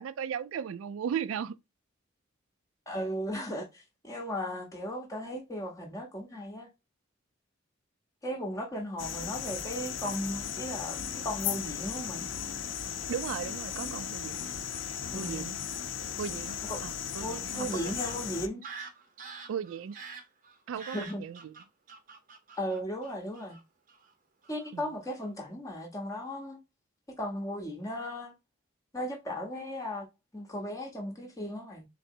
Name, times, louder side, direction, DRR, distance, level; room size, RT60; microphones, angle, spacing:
voice 1, 0.0-1.6 13.1-14.5 15.1-15.6 16.2-16.6 16.8-18.0 19.5-20.0 20.7-21.6 24.7-24.8, right 8 dB, 90° right, 0.3 m, -36 dB
voice 2, 2.9-6.7 8.2-12.2 15.1-15.5 16.7-16.8 17.2-18.6 20.9-21.2 22.6-23.6 24.5-26.6 27.1-28.3 28.9-30.1 30.3-31.8, equal, 15° left, 0.7 m, -36 dB
sound 1, 9.0-18.5, left 8 dB, 70° left, 0.5 m, -36 dB
Fowl / Bird vocalization bird call bird song, 11.0-11.7 12.5-13.2 14.0-14.1 14.4-14.8 16.5-16.6 17.2-17.3 17.7-23.6 23.9-24.1 24.4-24.7 25.0-25.3, right 4 dB, 45° right, 0.8 m, -47 dB
3.8 x 3.3 x 2.6 m
head